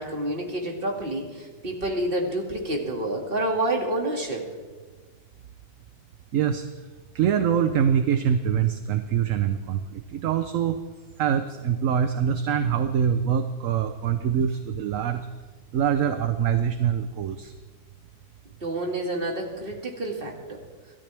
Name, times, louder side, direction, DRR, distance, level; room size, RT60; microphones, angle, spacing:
voice 1, 0.0-4.4 18.6-20.6, right 1 dB, 35° right, 1 dB, 2.4 m, -28 dB
voice 2, 6.3-6.6 7.1-10.8 11.2-15.2 15.7-17.5, right 8 dB, 60° right, 8 dB, 1.0 m, -24 dB
26.0 x 13.0 x 3.4 m, 1.4 s
omnidirectional pair, 1.7 m